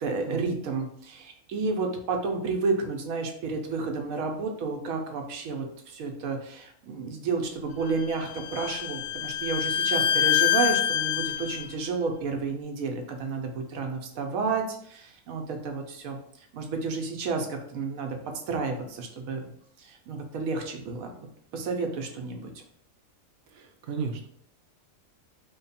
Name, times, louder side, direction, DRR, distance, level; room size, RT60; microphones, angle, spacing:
voice 1, 0.0-16.2 16.5-18.2 18.5-19.4 19.8-22.5, right 4 dB, 85° right, 3 dB, 1.1 m, -31 dB
Bowed string instrument, 7.9-11.7, left 11 dB, 65° left, 0.7 m, -26 dB
voice 2, 23.5-24.3, right 5 dB, 65° right, 4 dB, 0.6 m, -34 dB
3.1 x 2.2 x 4.1 m, 0.65 s
omnidirectional pair, 1.4 m